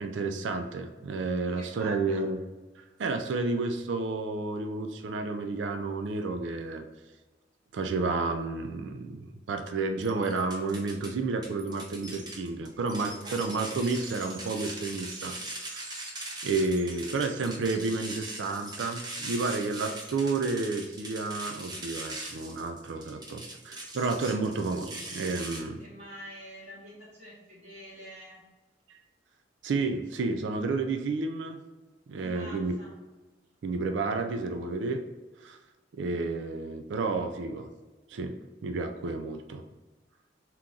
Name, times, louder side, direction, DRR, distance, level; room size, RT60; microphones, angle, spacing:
voice 1, 0.0-2.4 3.0-6.8 7.7-15.9 16.4-25.8 28.9-29.0 29.6-31.6 32.1-32.7 33.6-35.0 35.4-35.6 36.0-37.7 38.1-38.3 38.6-39.6, right 3 dB, 70° right, 5 dB, 0.4 m, -31 dB
voice 2, 1.4-2.3 13.0-13.4 25.8-28.4 32.1-32.9, right 1 dB, 40° right, -10 dB, 1.1 m, -47 dB
sound 1, 10.0-11.1 11.4-25.6, right 2 dB, 20° right, 0.8 m, -40 dB
3.7 x 2.9 x 3.7 m, 1.2 s
head